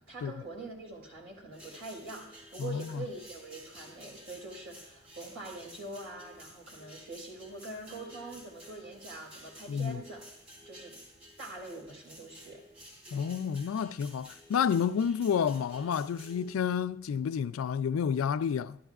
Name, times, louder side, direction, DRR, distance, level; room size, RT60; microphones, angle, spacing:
voice 1, 0.0-10.4 10.7-11.0 11.4-12.6, right 2 dB, 85° right, 4.1 m, -44 dB
sound 1, 1.5-16.5, equal, 30° right, 3.4 m, -52 dB
voice 2, 2.6-3.1 9.7-10.0 13.1-18.8, left 7 dB, 80° left, 0.3 m, -30 dB
12.0 x 12.0 x 2.4 m
head